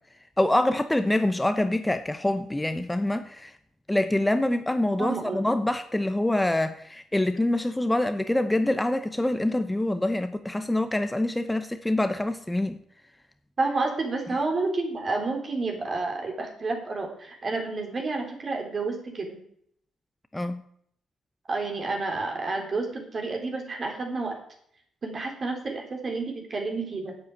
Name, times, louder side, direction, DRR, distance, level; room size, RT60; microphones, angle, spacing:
voice 1, 0.4-3.5 3.9-12.8 20.3-20.6, left 1 dB, 10° left, 10 dB, 0.8 m, -25 dB
voice 2, 5.0-5.4 13.6-19.4 21.5-24.4 25.0-27.2, right 3 dB, 40° right, 3 dB, 3.6 m, -30 dB
9.4 x 8.0 x 8.9 m, 0.68 s
cardioid pair, 90°, 0 cm